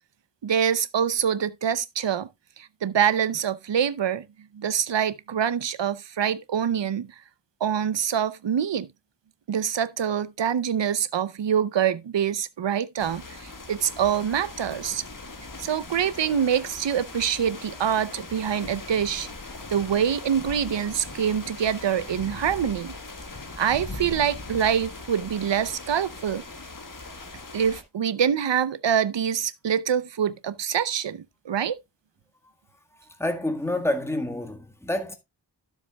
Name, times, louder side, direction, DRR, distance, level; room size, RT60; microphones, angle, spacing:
voice 1, 0.4-2.3 2.6-4.2 4.5-7.1 7.6-8.9 9.5-15.0 15.6-19.3 19.7-22.9 23.6-26.4 27.5-31.8, right 8 dB, 80° right, 0.7 m, -25 dB
sound 1, 13.0-27.8, left 3 dB, 50° left, 1.8 m, -40 dB
voice 2, 33.2-35.2, left 1 dB, 5° left, 1.7 m, -28 dB
12.5 x 7.3 x 2.3 m
wide cardioid pair, 55°, 43 cm